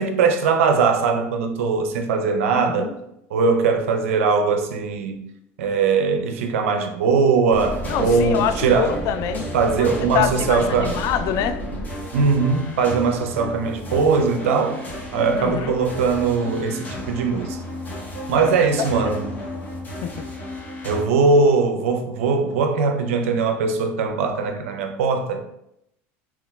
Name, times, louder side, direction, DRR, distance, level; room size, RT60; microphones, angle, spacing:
voice 1, 0.0-2.9 3.3-5.2 5.6-9.0 9.5-11.0 12.1-14.8 15.1-17.6 18.3-19.4 20.8-25.4, right 4 dB, 90° right, 0.5 m, -20 dB
voice 2, 2.5-2.9 7.9-9.5 9.8-11.6 15.3-15.8 18.5-19.2 20.0-20.3, left 9 dB, 55° left, 0.3 m, -26 dB
sound 1, 7.5-21.0, equal, 25° left, 1.4 m, -32 dB
3.7 x 2.9 x 2.2 m
supercardioid pair, 100°, 7 cm